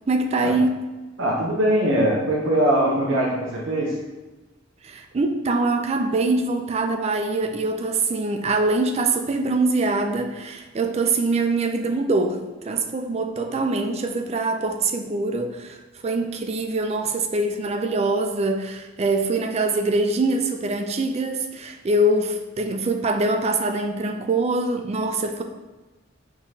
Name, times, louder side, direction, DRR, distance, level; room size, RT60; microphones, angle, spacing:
voice 1, 0.1-0.8 4.8-25.4, right 2 dB, 35° right, 6 dB, 0.4 m, -24 dB
voice 2, 1.2-4.0, right 1 dB, 75° right, -3 dB, 0.7 m, -21 dB
4.8 x 3.7 x 2.8 m, 1.1 s
head